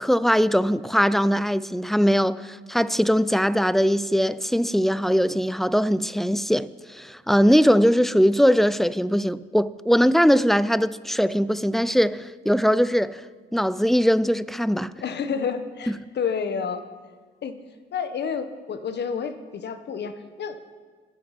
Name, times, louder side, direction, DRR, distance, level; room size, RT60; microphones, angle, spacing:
voice 1, 0.0-13.2 13.5-15.0, equal, ahead, 0.5 m, -21 dB
voice 2, 15.0-16.8 17.4-17.5 17.9-20.7, left 6 dB, 60° left, 1.4 m, -30 dB
25.5 x 8.6 x 6.0 m
cardioid pair, 90°, 20 cm